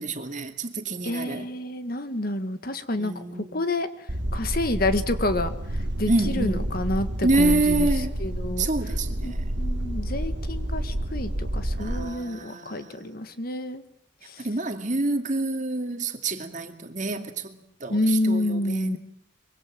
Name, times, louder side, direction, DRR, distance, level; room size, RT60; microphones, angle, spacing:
voice 1, 0.0-1.5 3.0-3.6 6.1-6.7 7.2-8.1 8.6-9.6 11.8-13.1 14.4-19.0, right 2 dB, 40° right, 2.3 m, -27 dB
voice 2, 1.0-3.1 3.5-8.7 9.2-13.8 14.2-14.5 17.9-19.0, left 1 dB, 50° left, 1.8 m, -29 dB
sound 1, 4.1-12.1, right 1 dB, 60° right, 1.8 m, -29 dB
25.0 x 23.5 x 7.6 m
head